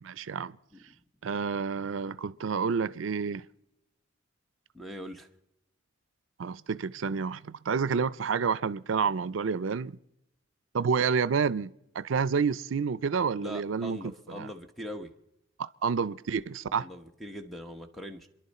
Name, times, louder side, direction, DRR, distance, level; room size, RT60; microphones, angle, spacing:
voice 1, 0.0-0.6 1.2-3.4 6.4-10.0 10.7-14.0 14.3-14.5 15.6-16.9, right 5 dB, 75° right, 0.5 m, -29 dB
voice 2, 4.7-5.3 13.4-15.1 16.8-18.3, equal, ahead, 1.0 m, -41 dB
28.5 x 11.0 x 4.2 m
head